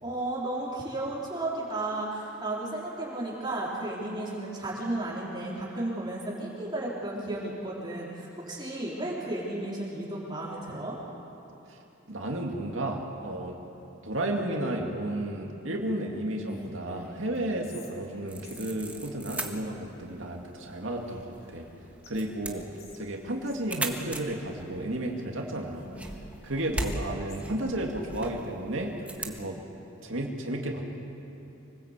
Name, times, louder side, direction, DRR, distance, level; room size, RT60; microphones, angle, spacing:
voice 1, 0.0-10.9, right 2 dB, 25° right, -6 dB, 4.0 m, -33 dB
voice 2, 12.1-13.6 14.0-21.7 22.1-22.7 23.0-25.9 26.4-29.6 30.0-30.9, right 1 dB, 85° right, 0 dB, 2.3 m, -33 dB
Whispering, 16.1-19.0 21.0-21.7 22.0-22.1 22.5-23.7 25.5-27.6, equal, 50° left, 3.6 m, -48 dB
sound 1, 18.3-29.4, right 1 dB, 5° right, 1.5 m, -40 dB
25.5 x 19.0 x 8.2 m, 3.0 s
head